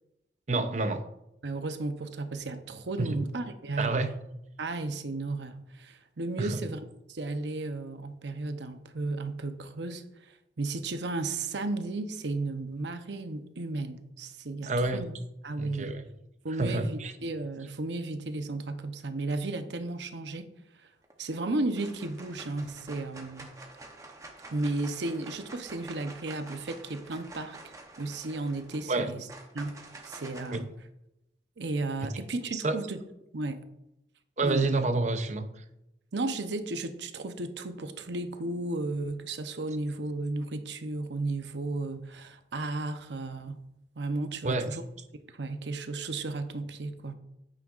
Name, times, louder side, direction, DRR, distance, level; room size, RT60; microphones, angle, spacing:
voice 1, 0.5-1.1 3.0-3.2 3.8-4.1 6.4-6.6 14.6-15.1 15.6-16.0 16.6-17.1 28.9-29.1 30.5-30.6 32.5-32.7 34.4-35.6 44.4-44.7, right 3 dB, 40° right, 9 dB, 0.6 m, -28 dB
voice 2, 1.4-4.0 4.6-6.8 7.1-15.1 15.4-16.0 16.4-20.5 21.2-23.5 24.5-29.2 29.5-29.8 30.0-30.7 31.6-33.0 33.3-33.6 34.4-34.7 36.1-43.6 44.0-44.8 45.3-47.1, right 2 dB, 85° right, 8 dB, 0.8 m, -34 dB
sound 1, 21.0-21.4 21.7-30.6, right 2 dB, 20° right, 0.9 m, -48 dB
9.1 x 9.0 x 2.5 m, 0.86 s
head